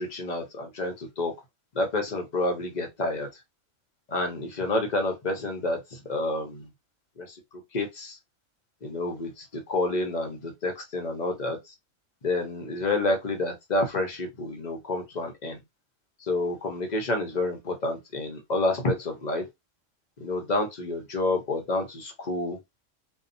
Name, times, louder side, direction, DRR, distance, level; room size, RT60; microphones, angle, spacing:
voice 1, 0.0-1.3 1.7-3.3 4.1-6.7 7.2-7.4 7.7-8.2 8.8-11.7 12.2-15.6 16.2-19.4 20.2-22.6, left 2 dB, 50° left, 0.6 m, -29 dB
2.7 x 2.1 x 2.5 m
omnidirectional pair, 1.4 m